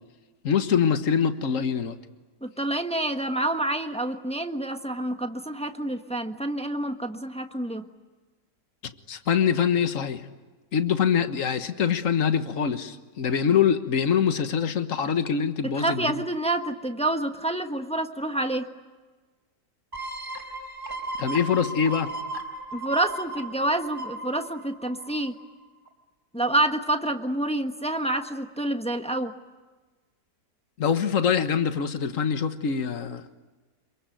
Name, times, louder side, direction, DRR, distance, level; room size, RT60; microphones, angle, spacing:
voice 1, 0.4-2.0 9.1-10.2 10.7-16.2 21.2-22.1 30.8-33.2, left 7 dB, 50° left, 9 dB, 1.7 m, -24 dB
voice 2, 2.4-7.8 15.7-18.7 22.7-25.3 26.3-29.3, right 1 dB, 5° left, 6 dB, 1.2 m, -28 dB
sound 1, 19.9-25.4 25.9-26.0, right 2 dB, 10° right, 4.2 m, -36 dB
27.5 x 23.5 x 9.3 m, 1.3 s
omnidirectional pair, 1.8 m